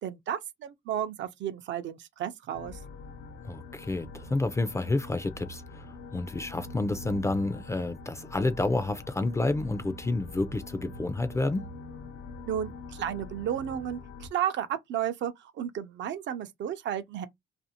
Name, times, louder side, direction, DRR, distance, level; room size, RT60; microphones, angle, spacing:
voice 1, 0.0-2.8 12.5-17.3, right 10 dB, 65° right, 0.5 m, -33 dB
sound 1, 2.5-14.3, left 2 dB, 80° left, 0.5 m, -44 dB
voice 2, 3.4-5.9 6.1-11.7, left 2 dB, 15° left, 0.3 m, -29 dB
2.5 x 2.4 x 2.8 m
cardioid pair, 90°, 20 cm